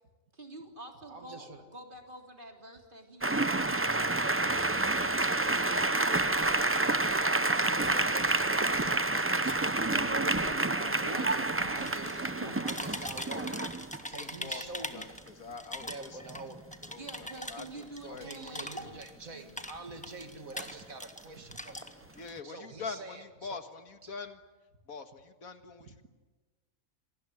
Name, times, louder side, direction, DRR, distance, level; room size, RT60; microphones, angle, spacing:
voice 1, 0.3-7.0 9.1-9.6 11.1-12.6 17.0-19.0 19.3-19.5 19.8-19.9, right 1 dB, 35° right, 3 dB, 3.6 m, -49 dB
voice 2, 1.1-1.6 5.4-5.5 7.5-10.0 11.1-15.2 15.8-16.6 18.1-21.8 22.4-23.6 24.0-24.1 25.9-26.1, right 3 dB, 75° right, 7 dB, 2.6 m, -46 dB
sound 1, 3.2-14.0 15.9-16.0 16.3-16.6 20.6-20.8, right 2 dB, 15° right, 0.5 m, -29 dB
voice 3, 9.8-12.5, left 1 dB, 25° left, 3 dB, 3.4 m, -46 dB
sound 2, 11.8-12.3 12.6-15.3 15.6-19.2 19.5-21.2 21.5-22.3, left 1 dB, 5° left, 1.4 m, -41 dB
voice 4, 14.2-18.6 22.2-24.4 24.9-26.1, left 4 dB, 90° left, 9 dB, 2.1 m, -45 dB
27.0 x 20.0 x 10.0 m, 1.3 s
omnidirectional pair, 1.4 m